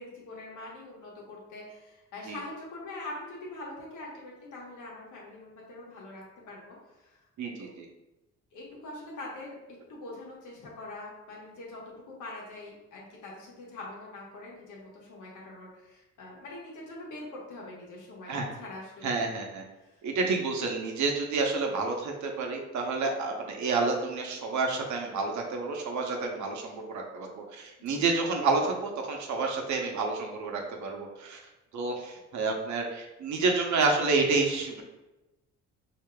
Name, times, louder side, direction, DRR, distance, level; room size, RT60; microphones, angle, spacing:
voice 1, 0.0-7.2 7.6-7.7 8.5-9.6 9.9-19.3 19.8-20.0 27.8-28.0, left 2 dB, 90° left, -3 dB, 1.2 m, -44 dB
voice 2, 7.4-7.9 18.3-18.5 19.0-19.6 20.0-31.4 31.7-34.8, right 3 dB, 70° right, 2 dB, 0.8 m, -29 dB
4.7 x 2.8 x 2.2 m, 1.0 s
cardioid pair, 90°, 30 cm